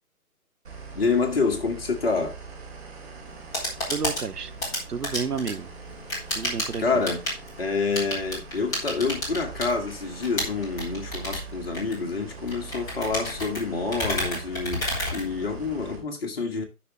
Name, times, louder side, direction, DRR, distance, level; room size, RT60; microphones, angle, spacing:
sound 1, 0.6-16.0, right 4 dB, 45° right, 3.0 m, -42 dB
voice 1, 0.9-2.4 6.8-7.2 7.6-16.6, left 4 dB, 40° left, 1.9 m, -27 dB
sound 2, 3.3-15.9, left 1 dB, 10° left, 1.7 m, -32 dB
voice 2, 3.9-4.5 4.9-5.7 6.3-7.0, right 5 dB, 85° right, 0.8 m, -31 dB
10.0 x 6.2 x 3.1 m
figure-of-eight pair, 145°, 45 cm